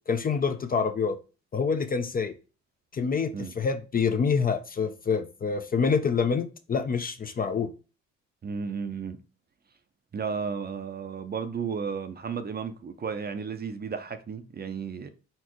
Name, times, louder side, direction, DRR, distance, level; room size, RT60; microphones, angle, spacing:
voice 1, 0.1-1.2 1.5-2.3 2.9-7.7, left 5 dB, 30° left, 0.5 m, -26 dB
voice 2, 8.4-9.2 10.1-15.1, right 6 dB, 35° right, 0.6 m, -33 dB
4.3 x 4.0 x 3.0 m
cardioid pair, 90°, 30 cm